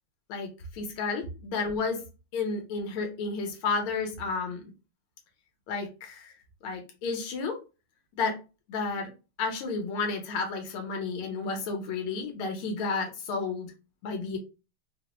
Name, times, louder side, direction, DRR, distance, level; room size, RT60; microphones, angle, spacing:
voice 1, 0.3-2.0 2.3-4.6 5.7-6.3 6.6-7.6 8.2-8.4 8.7-9.1 9.4-13.7 14.0-14.4, left 4 dB, 75° left, 2 dB, 1.8 m, -31 dB
4.5 x 2.1 x 2.9 m, 0.30 s
omnidirectional pair, 2.4 m